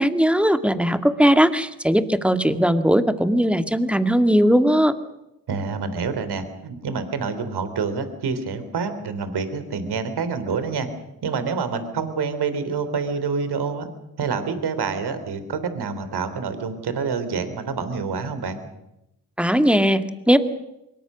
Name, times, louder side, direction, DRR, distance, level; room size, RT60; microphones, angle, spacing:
voice 1, 0.0-4.9 19.4-20.4, equal, 5° right, 8 dB, 2.1 m, -19 dB
voice 2, 5.5-10.9 11.2-13.9 14.2-18.6, right 5 dB, 60° right, 10 dB, 3.5 m, -27 dB
24.0 x 22.0 x 6.3 m, 0.88 s
hypercardioid pair, 40°, 44 cm